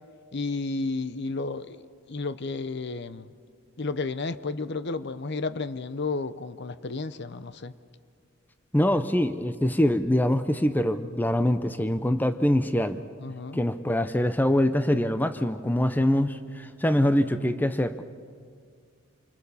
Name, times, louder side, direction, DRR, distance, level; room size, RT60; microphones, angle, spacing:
voice 1, 0.3-1.8 2.1-3.3 3.8-7.7 8.9-9.0 13.2-13.6, left 3 dB, 50° left, 13 dB, 0.7 m, -32 dB
voice 2, 8.7-13.0 13.5-18.0, left 1 dB, 10° left, 10 dB, 0.6 m, -24 dB
28.0 x 24.0 x 7.1 m, 2.1 s
head